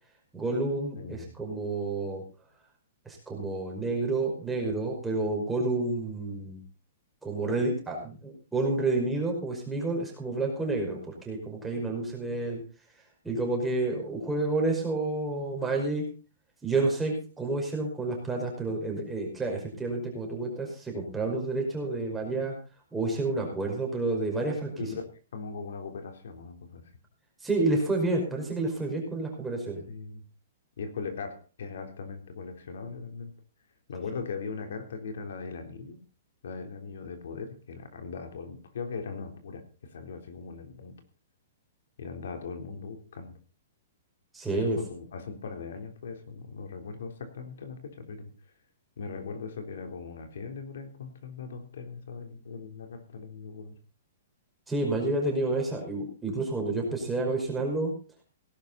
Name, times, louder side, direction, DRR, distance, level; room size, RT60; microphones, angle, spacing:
voice 1, 0.3-2.2 3.1-6.6 7.2-12.6 13.2-16.0 16.6-22.6 22.9-24.9 27.4-29.8 44.3-44.8 54.7-57.9, right 2 dB, 5° right, 0 dB, 5.3 m, -29 dB
voice 2, 1.0-1.4 24.8-25.0 25.3-26.8 29.9-30.2 30.8-33.3 33.9-36.0 36.4-39.6 39.9-41.0 42.0-43.3 44.5-48.3 49.0-53.8, left 5 dB, 80° left, 6 dB, 3.7 m, -39 dB
18.0 x 12.0 x 4.1 m, 0.35 s
hypercardioid pair, 165°, 0 cm